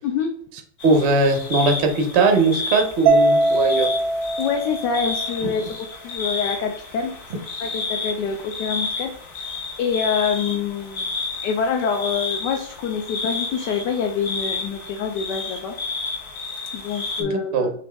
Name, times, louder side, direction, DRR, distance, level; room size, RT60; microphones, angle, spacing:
sound 1, 0.8-17.2, left 3 dB, 50° left, 0.8 m, -31 dB
voice 1, 0.8-3.9 5.4-5.5 17.2-17.7, right 3 dB, 65° right, 4 dB, 0.6 m, -20 dB
Mallet percussion, 3.1-5.5, right 2 dB, 90° right, 1.4 m, -21 dB
voice 2, 4.4-9.1 9.4-9.5 9.8-11.2 11.4-15.7 16.7-17.7, left 6 dB, 70° left, 3 dB, 1.1 m, -26 dB
5.2 x 2.5 x 3.3 m, 0.63 s
omnidirectional pair, 2.1 m